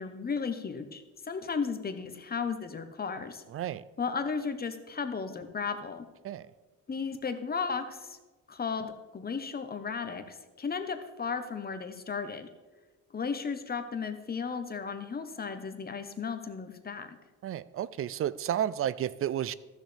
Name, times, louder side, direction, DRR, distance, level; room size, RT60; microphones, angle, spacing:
voice 1, 0.0-3.4 4.0-6.0 6.9-8.2 8.5-12.5 13.1-17.2, left 5 dB, 30° left, 8 dB, 1.0 m, -35 dB
voice 2, 3.5-3.8 6.2-6.5 17.4-19.5, right 11 dB, 50° right, 18 dB, 0.4 m, -31 dB
14.5 x 6.4 x 3.4 m, 1.2 s
cardioid pair, 90°, 30 cm